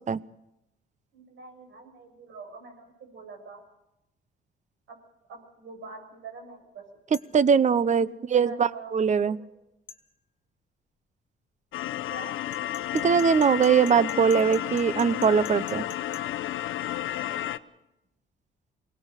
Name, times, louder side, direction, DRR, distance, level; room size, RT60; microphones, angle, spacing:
voice 1, 1.1-3.6 4.9-5.0 5.3-6.8 7.2-7.3 8.0-9.5 12.1-12.4, right 4 dB, 75° right, 4 dB, 7.0 m, -45 dB
sound 1, 7.1-7.4 9.9-10.0 12.5-16.2, left 6 dB, 45° left, 2.2 m, -47 dB
voice 2, 7.3-9.4 13.0-15.8, right 6 dB, 35° right, 17 dB, 0.8 m, -22 dB
sound 2, 11.7-17.6, left 12 dB, 80° left, 0.8 m, -32 dB
23.5 x 18.5 x 6.6 m, 0.90 s
cardioid pair, 90°, 20 cm